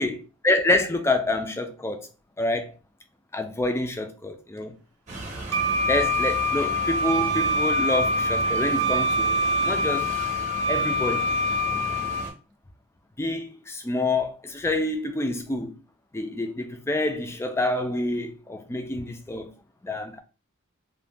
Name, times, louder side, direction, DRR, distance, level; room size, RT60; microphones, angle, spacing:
voice 1, 0.4-2.1 2.4-2.7 3.3-4.7 5.9-9.4 9.6-10.1 10.7-11.4 13.2-15.8 16.1-19.5 19.8-20.2, left 2 dB, 10° left, 0.3 m, -27 dB
sound 1, 5.1-12.3, right 2 dB, 35° right, 0.8 m, -36 dB
Wind instrument woodwind instrument, 5.5-12.3, equal, 70° right, 0.5 m, -25 dB
2.6 x 2.1 x 3.3 m
head